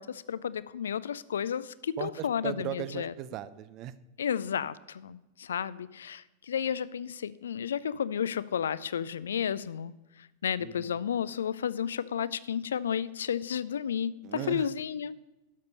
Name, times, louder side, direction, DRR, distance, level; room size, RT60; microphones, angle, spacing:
voice 1, 0.0-3.1 4.2-15.2, left 8 dB, 65° left, 18 dB, 0.4 m, -32 dB
voice 2, 2.0-3.9 10.6-11.0 14.2-14.7, right 12 dB, 40° right, 16 dB, 0.5 m, -38 dB
12.0 x 6.7 x 5.3 m, 1.0 s
figure-of-eight pair, 90°, 0 cm